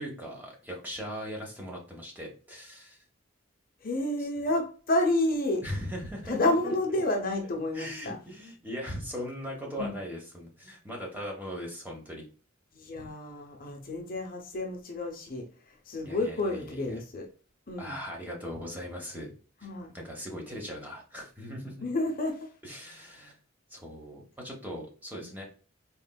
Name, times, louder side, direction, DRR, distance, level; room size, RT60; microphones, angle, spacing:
voice 1, 0.0-3.0 4.2-4.5 5.6-6.7 7.7-12.3 16.0-17.0 17.8-19.3 19.9-21.8 22.6-23.4 23.7-25.4, equal, 10° right, -1 dB, 0.9 m, -39 dB
voice 2, 3.8-5.6 6.3-8.2 9.8-9.9 12.7-17.3 17.7-18.0 19.6-19.9 21.8-22.5 25.2-25.4, left 1 dB, 45° left, 2 dB, 0.8 m, -30 dB
4.3 x 3.2 x 2.2 m, 0.38 s
head